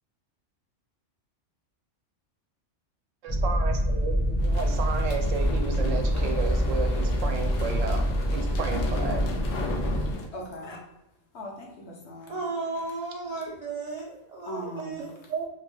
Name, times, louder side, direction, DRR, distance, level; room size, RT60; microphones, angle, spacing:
voice 1, 3.2-9.2 15.3-15.4, right 5 dB, 85° right, 4 dB, 0.9 m, -33 dB
sound 1, 3.3-10.1, equal, 10° left, 0.6 m, -26 dB
sound 2, 4.4-10.3, left 4 dB, 85° left, 1.0 m, -36 dB
voice 2, 10.3-10.9 11.3-12.3 14.5-15.0, equal, 65° left, -1 dB, 0.9 m, -38 dB
voice 3, 12.3-15.1, right 3 dB, 55° right, -5 dB, 0.4 m, -34 dB
3.0 x 2.2 x 3.0 m, 0.86 s
omnidirectional pair, 1.3 m